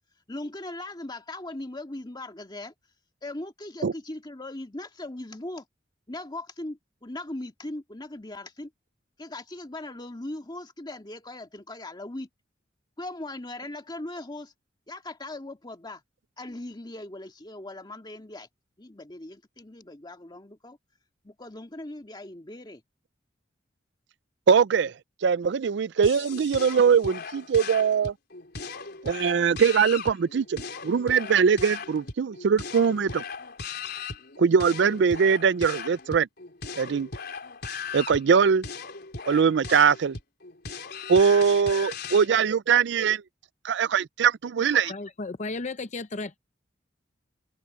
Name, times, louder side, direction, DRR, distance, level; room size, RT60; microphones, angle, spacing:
voice 1, 0.3-2.7 3.2-5.7 6.1-8.7 9.2-12.3 13.0-14.5 14.9-16.0 16.4-18.5 18.8-20.8 21.2-22.8, left 2 dB, 25° left, 1.9 m, -39 dB
voice 2, 24.5-24.9 25.2-28.1 29.0-33.2 34.4-36.3 36.8-37.1 37.9-38.7 39.3-40.2 41.1-43.2 43.6-44.9, right 6 dB, 70° right, 0.4 m, -22 dB
sound 1, 26.0-42.3, left 5 dB, 60° left, 4.2 m, -38 dB
voice 3, 44.7-46.4, left 3 dB, 40° left, 0.6 m, -34 dB
head